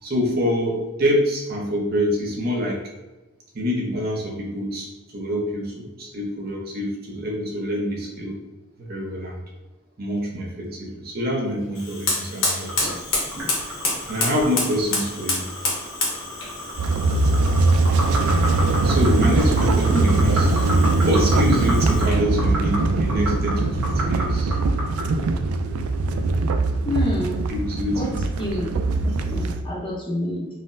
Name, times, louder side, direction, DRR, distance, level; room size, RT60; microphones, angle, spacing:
voice 1, 0.0-2.8 3.5-8.4 8.8-9.4 10.0-12.9 14.1-15.5 18.8-20.6 21.0-24.6 27.5-28.1 28.4-28.5, equal, 45° right, -1 dB, 0.6 m, -26 dB
Fire, 11.7-22.3, left 2 dB, 65° left, 0.9 m, -30 dB
sound 1, 12.7-25.1, equal, 60° right, 1.0 m, -31 dB
sound 2, 16.8-29.6, right 3 dB, 85° right, 0.3 m, -21 dB
voice 2, 19.9-20.4 26.8-27.4 27.9-28.1 28.4-28.7 29.0-30.5, left 1 dB, 25° left, -4 dB, 0.6 m, -28 dB
3.9 x 2.0 x 2.5 m, 1.1 s
head